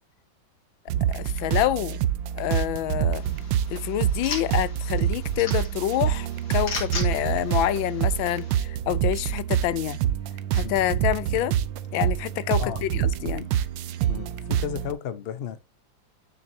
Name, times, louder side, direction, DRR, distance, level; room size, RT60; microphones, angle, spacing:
sound 1, 0.9-14.9, right 10 dB, 75° right, 1.4 m, -26 dB
voice 1, 1.1-2.0 2.4-3.2 3.7-10.0 10.5-11.5 11.9-13.5, left 13 dB, 90° left, 1.4 m, -27 dB
sound 2, 3.1-8.5, left 4 dB, 75° left, 2.6 m, -38 dB
voice 2, 14.1-15.6, left 9 dB, 50° left, 0.7 m, -33 dB
9.2 x 7.0 x 2.8 m
omnidirectional pair, 2.1 m